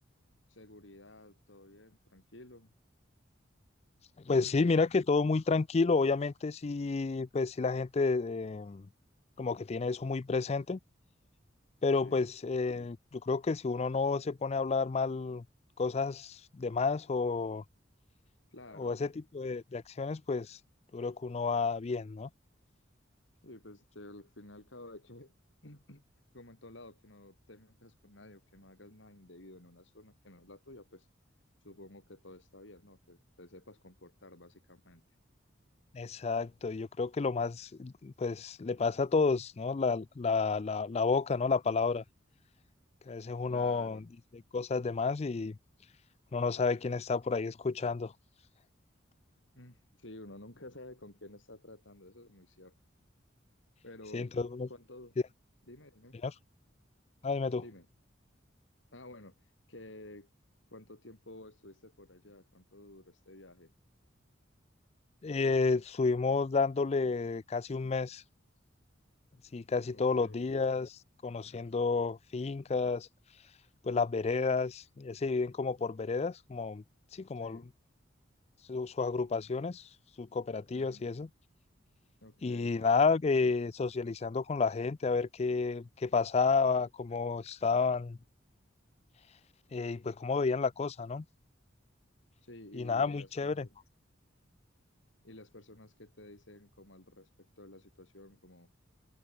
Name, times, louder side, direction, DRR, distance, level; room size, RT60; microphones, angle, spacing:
voice 1, 0.5-2.7 12.0-12.3 18.5-19.0 23.4-25.3 25.6-26.0 26.3-31.1 31.6-35.1 43.5-44.0 49.5-52.7 53.8-54.3 54.7-55.2 55.7-56.2 57.6-57.9 58.9-60.3 60.7-63.7 69.9-70.5 77.4-77.7 80.7-81.1 82.2-82.8 92.4-93.8 95.2-98.7, left 1 dB, 75° left, 4.6 m, -52 dB
voice 2, 4.3-8.9 9.4-10.8 11.8-15.4 15.8-17.6 18.8-19.1 19.3-20.6 20.9-22.3 35.9-42.0 43.1-44.0 44.5-45.6 46.3-48.1 54.1-54.7 56.2-56.3 57.2-57.6 65.2-68.2 69.5-70.9 71.2-73.1 73.8-76.8 77.1-77.6 78.7-79.8 80.2-81.3 82.4-88.2 89.7-91.2 92.7-93.7, left 4 dB, 35° left, 0.4 m, -31 dB
head